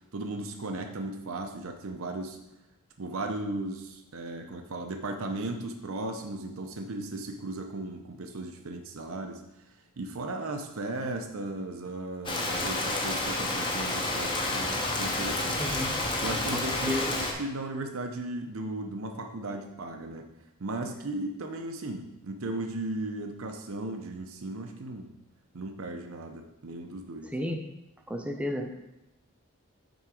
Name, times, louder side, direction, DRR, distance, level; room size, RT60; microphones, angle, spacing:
voice 1, 0.1-2.4 3.0-9.4 10.0-15.6 16.2-20.3 20.6-25.1 25.5-27.3, right 2 dB, 70° right, 5 dB, 0.7 m, -36 dB
Rain, 12.3-17.3, left 2 dB, 20° left, 1.0 m, -30 dB
voice 2, 15.6-16.0 16.5-17.2 27.2-27.7 28.1-28.8, equal, 5° right, 4 dB, 0.6 m, -33 dB
9.3 x 3.9 x 4.8 m, 0.92 s
head